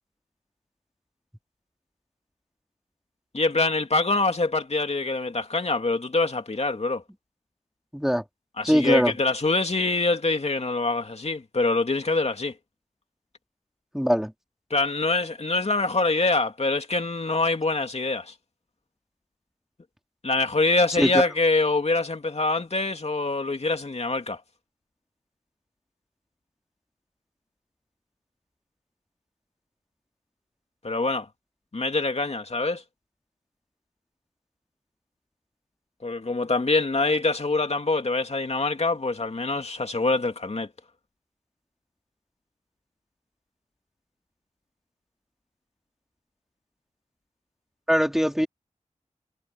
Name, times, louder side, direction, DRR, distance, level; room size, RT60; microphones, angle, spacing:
voice 1, 3.3-7.0 8.6-12.5 14.7-18.3 20.2-24.4 30.8-31.3 31.7-32.8 36.0-40.7, left 3 dB, 55° left, 2.6 m, -25 dB
voice 2, 7.9-8.2 8.6-9.1 13.9-14.3 21.0-21.1 47.9-48.5, equal, 5° right, 3.0 m, -21 dB
cardioid pair, 40°, 13 cm